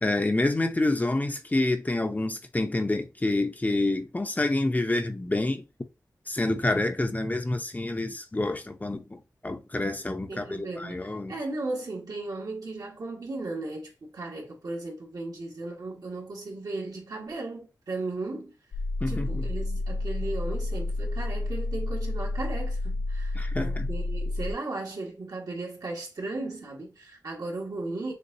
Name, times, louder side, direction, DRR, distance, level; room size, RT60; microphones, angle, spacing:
voice 1, 0.0-5.6 6.3-11.3 19.0-19.5 23.3-23.9, left 2 dB, 25° left, 0.7 m, -28 dB
voice 2, 10.3-18.5 19.1-28.1, right 2 dB, 65° right, 1.6 m, -36 dB
sound 1, 18.7-24.5, left 2 dB, 85° left, 0.6 m, -30 dB
6.6 x 2.4 x 2.7 m
wide cardioid pair, 70°, 7 cm